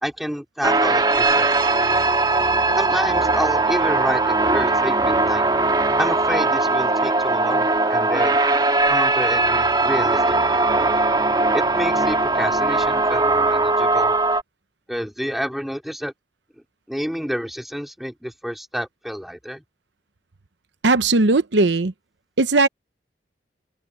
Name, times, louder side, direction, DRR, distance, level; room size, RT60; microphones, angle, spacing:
voice 1, 0.0-1.7 2.8-5.4 6.0-8.4 8.9-10.6 11.5-14.2 14.9-16.1 16.9-19.6, equal, ahead, 4.4 m, -29 dB
sound 1, 0.6-14.4, right 2 dB, 25° right, 2.0 m, -19 dB
voice 2, 20.8-21.9 22.4-22.7, right 3 dB, 90° right, 0.9 m, -17 dB
head